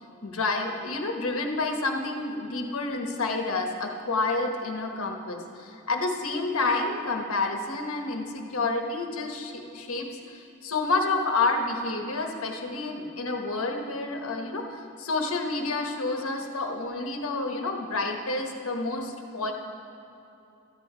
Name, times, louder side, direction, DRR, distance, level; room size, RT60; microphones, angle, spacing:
voice 1, 0.2-19.5, left 3 dB, 80° left, 3 dB, 1.1 m, -29 dB
13.0 x 8.4 x 4.9 m, 2.8 s
head